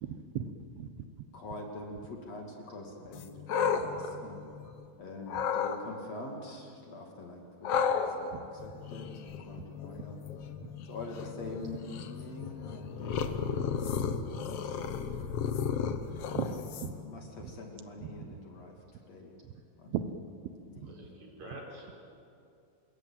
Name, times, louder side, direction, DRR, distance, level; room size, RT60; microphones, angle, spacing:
voice 1, 0.0-0.5 0.8-1.0 7.7-7.8 8.3-8.4 8.7-8.8 10.6-10.7 14.2-14.3 15.9-16.0 16.3-16.9 17.4-17.5 18.0-18.4 19.4-19.5 19.9-20.0 20.8-20.9 21.5-21.6, right 9 dB, 85° right, 9 dB, 3.0 m, -38 dB
voice 2, 1.3-4.4 5.0-9.1 9.4-10.2 10.9-13.9 14.2-15.2 16.9-18.8 19.1-19.4 19.8-19.9 21.0-21.3, left 2 dB, 45° left, 1 dB, 3.5 m, -45 dB
sound 1, 3.1-4.9 5.3-5.8 7.6-17.1, left 7 dB, 70° left, 1.4 m, -34 dB
voice 3, 20.8-22.0, right 1 dB, 50° right, -1 dB, 5.5 m, -47 dB
26.0 x 21.5 x 8.9 m, 2.5 s
omnidirectional pair, 4.3 m